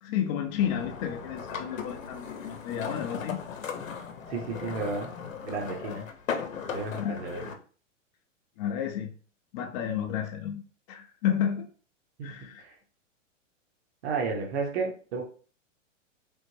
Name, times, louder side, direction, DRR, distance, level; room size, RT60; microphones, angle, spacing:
voice 1, 0.0-3.4 7.0-7.2 8.6-9.1 9.5-10.6 10.9-11.7 12.2-12.6, left 9 dB, 35° left, 4 dB, 0.4 m, -31 dB
sound 1, 0.6-7.5, left 6 dB, 85° left, 0.7 m, -37 dB
voice 2, 4.3-5.1 5.4-6.0 6.7-7.4 12.2-12.3 12.6-12.7 14.0-15.2, right 4 dB, 55° right, 1 dB, 1.0 m, -32 dB
3.4 x 2.1 x 3.1 m, 0.40 s
hypercardioid pair, 115°, 39 cm